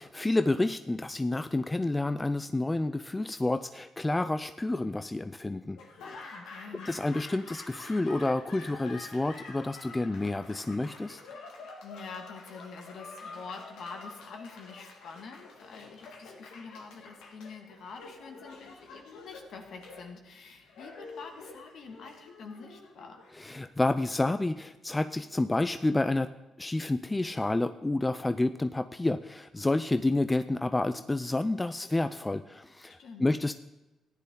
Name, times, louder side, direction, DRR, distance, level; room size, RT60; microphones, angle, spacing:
voice 1, 0.0-5.8 6.0-6.2 6.9-11.2 23.4-26.3 26.6-33.6, left 2 dB, 15° left, 10 dB, 0.4 m, -29 dB
Laughter / Applause, 5.7-23.8, left 3 dB, 85° left, 1.9 m, -48 dB
voice 2, 6.3-6.9 11.8-23.2 33.0-33.3, left 4 dB, 65° left, 4 dB, 1.9 m, -46 dB
15.0 x 10.0 x 3.8 m, 1.0 s
cardioid pair, 90°, 0 cm